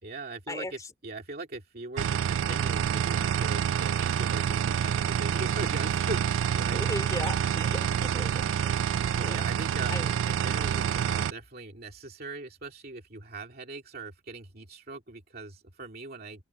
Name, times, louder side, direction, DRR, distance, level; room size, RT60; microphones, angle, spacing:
voice 1, 0.0-6.8 9.1-16.4, right 3 dB, 50° right, 2.5 m, -40 dB
sound 1, 2.0-11.3, right 8 dB, 85° right, 0.3 m, -27 dB
voice 2, 6.7-8.8 9.2-9.5 9.9-10.1, left 1 dB, 20° left, 3.1 m, -37 dB
open air
head